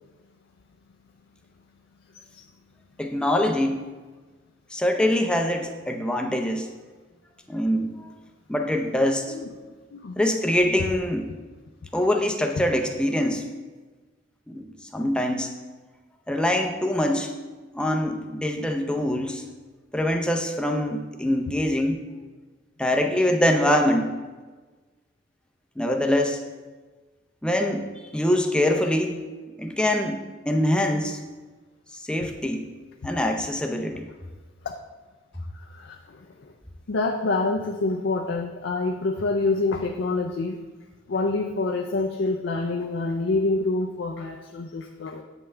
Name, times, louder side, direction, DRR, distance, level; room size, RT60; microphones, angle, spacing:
voice 1, 3.0-3.8 4.7-6.7 7.5-8.1 8.5-9.3 10.2-11.3 11.9-13.5 14.5-14.6 14.9-15.5 16.3-17.3 17.7-19.4 19.9-22.0 22.8-24.2 25.8-26.4 27.4-27.9 28.1-29.2 29.6-31.2 31.9-32.6 33.0-34.1, left 1 dB, 5° left, 3 dB, 0.6 m, -24 dB
voice 2, 9.9-10.2 33.9-34.0 34.6-34.7 35.6-36.5 36.9-40.6 41.1-45.2, left 3 dB, 70° left, 2 dB, 0.5 m, -27 dB
8.1 x 5.5 x 3.3 m, 1.3 s
head